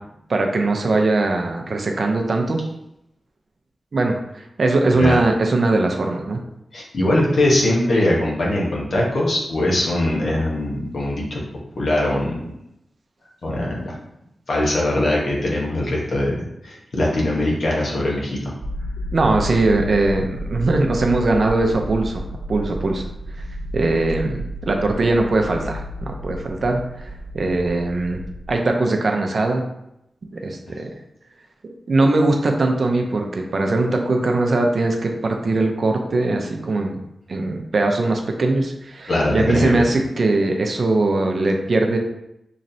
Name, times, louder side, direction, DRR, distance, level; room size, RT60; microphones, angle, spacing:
voice 1, 0.3-2.6 3.9-4.2 4.6-6.4 19.1-22.2 22.5-23.0 23.7-27.1 27.3-28.2 28.5-29.6 30.3-30.9 31.9-37.0 37.3-42.0, right 2 dB, 50° right, 2 dB, 0.5 m, -20 dB
voice 2, 6.7-11.4 11.8-12.4 13.4-13.9 14.5-18.5 30.7-30.8 39.1-39.8, left 1 dB, 65° left, -3 dB, 1.0 m, -21 dB
sound 1, 18.6-28.5, left 1 dB, 30° right, 1.0 m, -32 dB
4.0 x 3.1 x 2.7 m, 0.82 s
wide cardioid pair, 110°, 0 cm